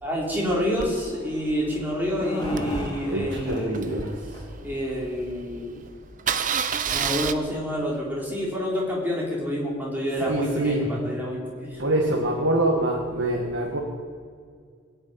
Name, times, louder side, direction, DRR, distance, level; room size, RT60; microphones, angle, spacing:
voice 1, 0.0-3.8 4.6-5.8 6.9-11.9, equal, 10° right, -5 dB, 3.8 m, -28 dB
Engine starting, 0.8-5.0 5.4-5.5 5.7-5.9 6.2-7.3, right 7 dB, 40° right, 0.6 m, -30 dB
sound 1, 2.0-4.1 4.3-4.4 4.9-5.0 5.9-6.0 6.4-6.5, left 1 dB, 20° left, 3.7 m, -35 dB
voice 2, 3.1-4.4 10.3-10.9 11.8-13.8, right 1 dB, 65° right, -1 dB, 2.0 m, -25 dB
19.5 x 6.9 x 8.9 m, 2.1 s
head